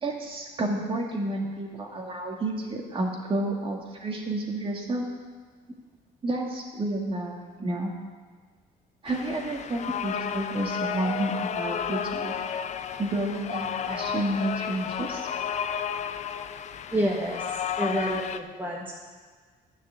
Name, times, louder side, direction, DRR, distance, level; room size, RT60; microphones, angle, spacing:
voice 1, 0.0-5.1 6.2-7.9 9.0-12.3 13.0-15.3, right 1 dB, 30° right, 0 dB, 2.3 m, -30 dB
sound 1, 9.1-18.4, left 7 dB, 45° left, 0.6 m, -32 dB
voice 2, 16.9-18.9, right 1 dB, 10° right, -3 dB, 1.5 m, -29 dB
10.5 x 6.5 x 8.1 m, 1.5 s
cardioid pair, 110°, 17 cm